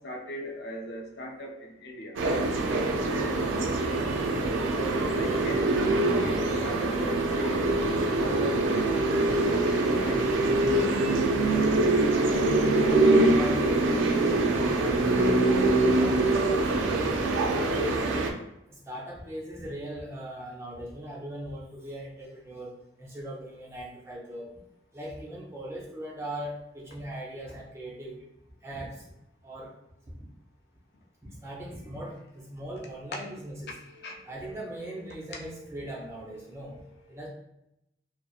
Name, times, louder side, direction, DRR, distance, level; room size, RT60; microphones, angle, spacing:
voice 1, 0.0-2.2 3.3-3.6 5.1-10.3 33.7-37.2, equal, 55° left, -1 dB, 0.4 m, -41 dB
sound 1, 2.2-18.3, right 2 dB, 85° right, 0.3 m, -24 dB
voice 2, 13.0-18.2 18.7-22.7 23.0-24.5 24.9-28.2 28.6-29.1 29.4-29.7 30.2-30.3 31.2-33.7 34.2-36.7 37.1-37.3, right 1 dB, 15° right, -4 dB, 0.5 m, -40 dB
2.7 x 2.0 x 2.3 m, 0.84 s
head